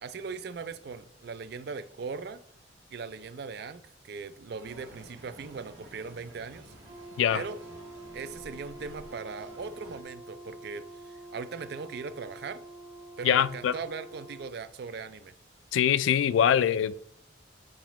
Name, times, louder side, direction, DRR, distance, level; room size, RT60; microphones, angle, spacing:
voice 1, 0.0-2.4 2.9-6.7 7.3-7.6 8.1-12.6 13.2-15.3, right 5 dB, 55° right, 0.4 m, -39 dB
sound 1, 4.6-10.0, right 1 dB, 80° right, 1.5 m, -51 dB
Brass instrument, 6.8-14.5, right 2 dB, 35° right, 1.3 m, -47 dB
voice 2, 13.2-13.7 15.7-16.9, left 9 dB, 80° left, 0.3 m, -23 dB
8.7 x 4.9 x 3.0 m
head